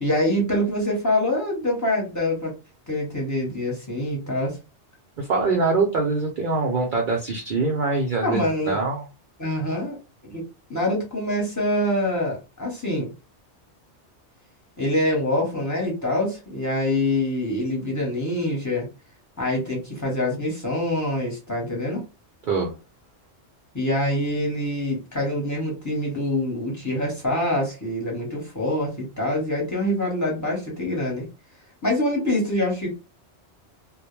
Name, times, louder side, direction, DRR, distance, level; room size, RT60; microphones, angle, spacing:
voice 1, 0.0-2.5 2.9-4.6 8.2-8.8 9.4-10.0 10.2-10.4 10.7-13.1 14.8-18.9 19.4-22.0 23.7-31.3 31.8-32.9, left 1 dB, 15° left, -2 dB, 0.9 m, -25 dB
voice 2, 5.2-9.1 22.5-22.7, right 3 dB, 55° right, 0 dB, 0.6 m, -23 dB
2.2 x 2.1 x 3.0 m, 0.29 s
omnidirectional pair, 1.2 m